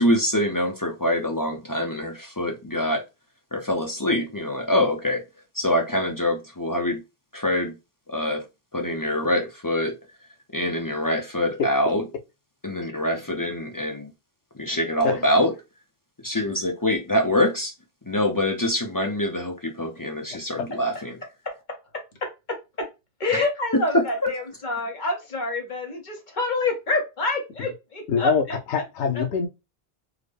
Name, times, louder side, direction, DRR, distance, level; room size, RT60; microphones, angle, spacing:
voice 1, 0.0-3.0 3.5-5.2 5.5-7.0 7.3-7.7 8.1-8.4 8.7-9.9 10.5-12.0 12.6-14.1 14.6-15.5 16.2-17.7 18.1-21.2 23.7-24.0, left 1 dB, 30° left, 0.4 m, -24 dB
voice 2, 21.9-22.9 23.2-28.3 29.2-29.3, left 2 dB, 45° left, 1.0 m, -27 dB
voice 3, 28.1-29.5, left 6 dB, 85° left, 0.9 m, -24 dB
3.7 x 2.1 x 3.3 m
omnidirectional pair, 1.1 m